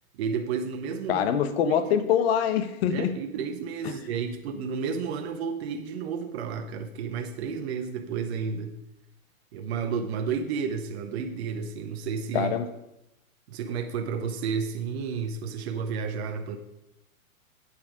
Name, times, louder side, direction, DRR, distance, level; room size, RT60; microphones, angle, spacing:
voice 1, 0.2-1.3 1.7-1.8 2.9-8.8 9.5-12.5 13.5-16.6, right 6 dB, 45° right, 6 dB, 0.9 m, -31 dB
voice 2, 1.1-3.1 3.8-4.0 12.3-12.7, left 8 dB, 45° left, 11 dB, 1.0 m, -24 dB
8.4 x 8.4 x 4.9 m, 0.89 s
hypercardioid pair, 135°, 43 cm